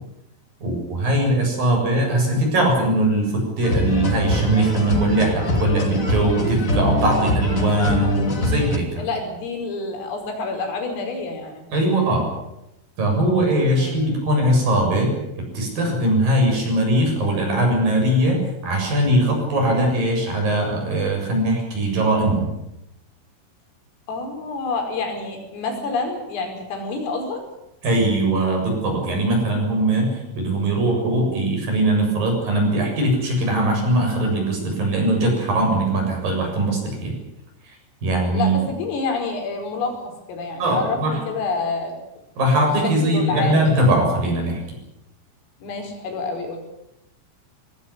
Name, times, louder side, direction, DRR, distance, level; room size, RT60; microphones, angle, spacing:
voice 1, 0.6-9.0 11.7-12.3 13.0-22.5 27.8-37.1 37.7-37.8 38.0-38.6 40.6-41.2 42.4-44.6, right 1 dB, 45° right, 2 dB, 8.8 m, -20 dB
sound 1, 3.6-8.8, left 1 dB, 30° left, 1.4 m, -23 dB
voice 2, 9.0-11.7 13.8-14.2 24.1-27.4 38.3-42.0 43.0-43.9 45.6-46.6, left 3 dB, 85° left, 3 dB, 7.6 m, -28 dB
24.5 x 19.5 x 8.3 m, 0.87 s
omnidirectional pair, 5.8 m